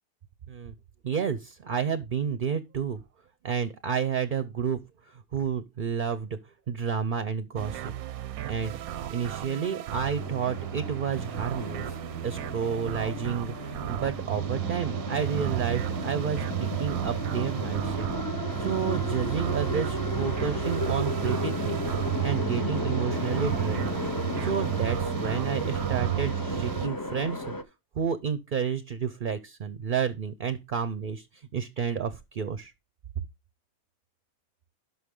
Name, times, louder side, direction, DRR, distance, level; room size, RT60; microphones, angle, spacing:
voice 1, 1.0-3.0 3.4-4.8 5.3-6.4 6.7-7.9 8.5-8.8 9.1-11.8 12.2-18.1 18.6-21.8 22.2-23.9 24.4-27.5 28.0-31.3 31.5-32.7, right 7 dB, 50° right, 0.6 m, -30 dB
Duck in a Whirlpool, 7.6-26.9, right 12 dB, 90° right, 1.1 m, -32 dB
sound 1, 10.2-27.6, left 3 dB, 30° left, 0.4 m, -35 dB
11.5 x 5.9 x 3.7 m
omnidirectional pair, 1.5 m